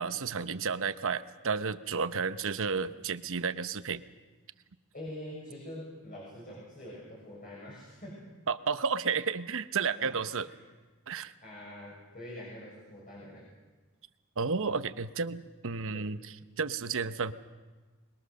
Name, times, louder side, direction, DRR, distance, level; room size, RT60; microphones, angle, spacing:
voice 1, 0.0-4.0 8.5-10.5 11.1-11.3 14.4-17.3, right 5 dB, 65° right, 12 dB, 0.9 m, -32 dB
voice 2, 4.9-8.2 10.0-10.1 10.5-10.6 11.4-13.5 15.9-16.1, left 1 dB, 40° left, -4 dB, 7.0 m, -45 dB
26.5 x 21.5 x 6.6 m, 1.3 s
head